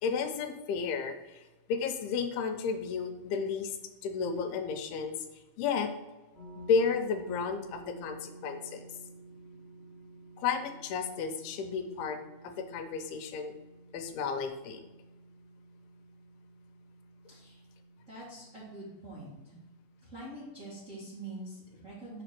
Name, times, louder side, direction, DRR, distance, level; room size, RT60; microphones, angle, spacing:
voice 1, 0.0-1.4 1.7-3.8 4.0-5.2 5.6-5.9 6.6-8.8 10.4-12.2 12.4-13.5 13.9-14.8, left 5 dB, 85° left, 6 dB, 2.7 m, -32 dB
sound 1, 6.3-20.4, right 3 dB, 10° right, 1.6 m, -53 dB
voice 2, 17.3-17.6 18.1-19.5 20.0-22.2, right 1 dB, 35° right, -8 dB, 1.4 m, -45 dB
6.9 x 4.0 x 5.9 m, 1.1 s
omnidirectional pair, 4.5 m